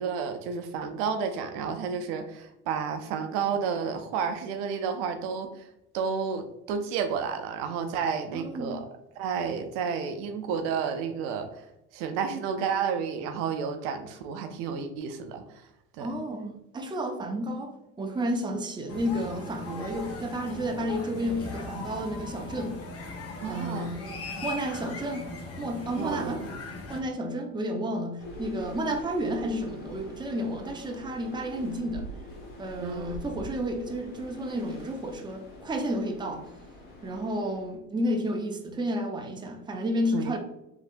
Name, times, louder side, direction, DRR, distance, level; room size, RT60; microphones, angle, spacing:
voice 1, 0.0-5.7 5.9-11.7 11.9-15.7 16.0-16.1 23.4-23.9 26.0-26.5 32.8-33.2 40.1-40.3, right 6 dB, 75° right, 7 dB, 0.5 m, -31 dB
voice 2, 8.3-8.8 16.0-22.8 23.5-25.3 25.6-26.4 26.9-32.1 32.6-36.4 37.0-40.4, equal, 15° right, 3 dB, 0.5 m, -31 dB
sound 1, 18.9-27.0, left 3 dB, 45° left, 0.9 m, -39 dB
sound 2, 28.2-37.8, equal, 70° left, 1.4 m, -44 dB
3.3 x 2.8 x 2.5 m, 0.85 s
hypercardioid pair, 65°, 32 cm